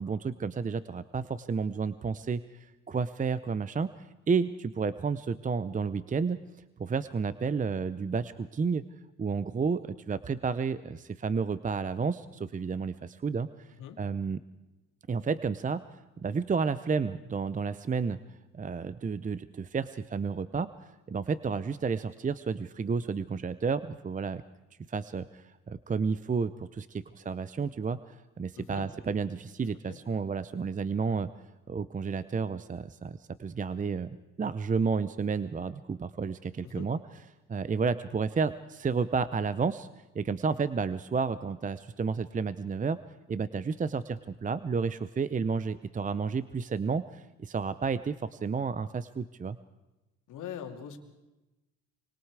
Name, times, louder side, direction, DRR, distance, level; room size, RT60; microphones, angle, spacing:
voice 1, 0.0-6.4 6.8-8.8 9.2-14.4 15.1-15.8 16.2-18.2 18.5-20.7 21.1-24.4 24.9-31.3 31.7-37.0 37.5-39.9 40.1-43.0 43.3-49.6, right 5 dB, 25° right, 15 dB, 0.6 m, -31 dB
voice 2, 28.5-28.9 29.9-30.0 36.6-36.9 50.3-51.0, left 8 dB, 85° left, 4 dB, 2.5 m, -42 dB
25.5 x 25.0 x 4.8 m, 1.0 s
cardioid pair, 90°, 30 cm